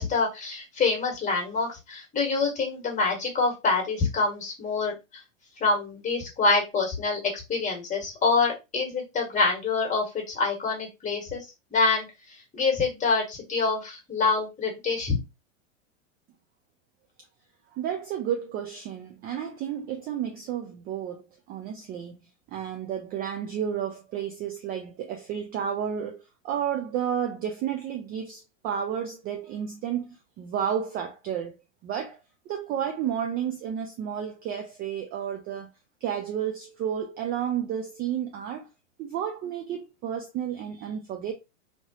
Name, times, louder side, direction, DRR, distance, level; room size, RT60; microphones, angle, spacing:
voice 1, 0.0-4.9 5.6-7.2 7.5-11.4 11.7-12.1 12.5-15.2, left 4 dB, 20° left, 1.6 m, -26 dB
voice 2, 17.7-22.2 22.5-31.5 31.8-32.2 32.5-35.7 36.0-38.7 39.0-41.3, right 9 dB, 25° right, 0.4 m, -31 dB
2.9 x 2.9 x 2.8 m
hypercardioid pair, 110°, 37 cm